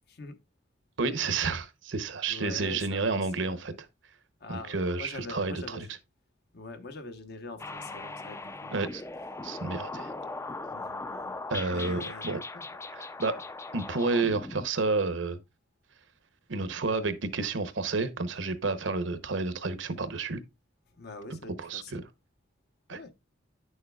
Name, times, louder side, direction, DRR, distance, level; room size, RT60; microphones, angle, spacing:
voice 1, 1.0-3.7 4.5-5.8 8.7-9.0 9.4-10.1 11.5-12.4 12.9-13.4 13.7-15.4 16.5-20.4 21.7-22.0 22.9-23.0, right 3 dB, 70° right, 0.8 m, -30 dB
voice 2, 2.3-3.6 4.4-5.9 6.5-8.7 10.7-11.4 11.7-12.3 12.5-12.7 13.3-13.4 20.9-22.1 22.9-23.1, left 3 dB, 60° left, 1.0 m, -44 dB
sound 1, 7.6-14.7, left 3 dB, 15° left, 0.4 m, -39 dB
9.4 x 6.5 x 2.3 m
head